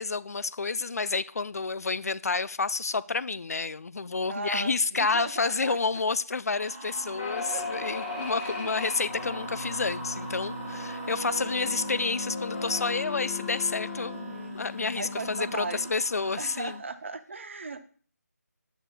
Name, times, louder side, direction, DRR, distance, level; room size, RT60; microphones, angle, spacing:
voice 1, 0.0-14.2 14.5-16.8, left 4 dB, 65° left, 0.4 m, -29 dB
voice 2, 4.3-6.0 7.5-7.7 8.1-8.7 14.1-14.6 14.9-15.9 16.4-17.8, right 3 dB, 45° right, 0.7 m, -38 dB
sound 1, 6.5-16.7, right 2 dB, 10° right, 1.4 m, -40 dB
sound 2, 7.2-15.9, left 4 dB, 15° left, 1.1 m, -38 dB
8.1 x 7.8 x 2.2 m
figure-of-eight pair, 165°, 9 cm